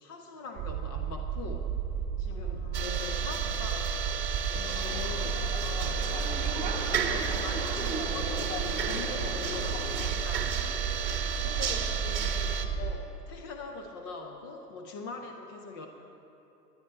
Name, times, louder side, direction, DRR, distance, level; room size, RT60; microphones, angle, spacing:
voice 1, 0.0-1.7 2.2-3.9 4.5-6.1 6.5-9.7 10.1-10.6 11.8-11.9 12.7-15.9, left 3 dB, 15° left, 3 dB, 0.3 m, -43 dB
sound 1, 0.6-12.9, right 6 dB, 25° right, 0.9 m, -33 dB
voice 2, 2.3-3.9 4.5-4.9 9.1-9.4 10.4-10.6 11.3-12.8, left 4 dB, 55° left, 1 dB, 3.5 m, -46 dB
sound 2, 2.7-12.7, right 7 dB, 80° right, 1.4 m, -33 dB
sound 3, 4.5-10.1, left 4 dB, 75° left, 2.0 m, -39 dB
24.0 x 10.0 x 4.3 m, 2.9 s
hypercardioid pair, 115°, 49 cm